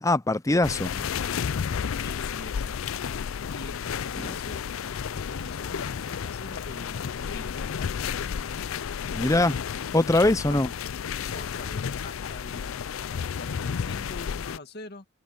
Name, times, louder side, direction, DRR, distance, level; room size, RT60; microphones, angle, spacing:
voice 1, 0.0-1.1 9.1-9.6 9.9-10.7, left 2 dB, 15° left, 0.6 m, -22 dB
sound 1, 0.6-14.6, left 7 dB, 70° left, 0.4 m, -32 dB
voice 2, 1.7-3.2 3.5-4.6 5.2-7.8 10.5-10.6 11.3-15.1, left 2 dB, 50° left, 1.9 m, -44 dB
head